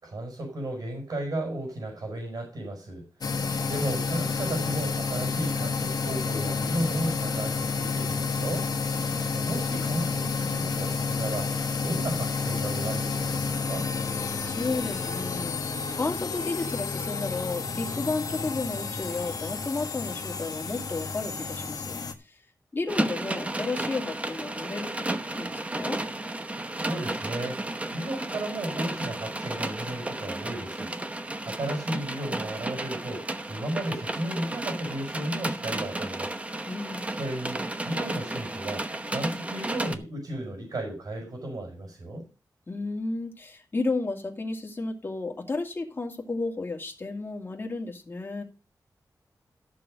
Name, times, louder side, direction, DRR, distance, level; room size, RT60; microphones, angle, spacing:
voice 1, 0.0-3.0 3.7-9.1 9.3-11.5 11.8-13.9 26.7-30.9 31.5-36.4 37.1-42.2, right 1 dB, 65° right, 1 dB, 5.9 m, -34 dB
sound 1, 3.2-22.1, left 5 dB, 60° left, 1.5 m, -30 dB
voice 2, 3.3-3.7 14.2-22.0 22.3-22.4 22.7-26.0 36.7-37.1 42.7-48.4, left 3 dB, 30° left, 2 dB, 2.4 m, -33 dB
sound 2, 22.9-39.9, right 2 dB, 20° right, 0.9 m, -33 dB
13.5 x 7.1 x 5.2 m, 0.33 s
wide cardioid pair, 155°, 7 cm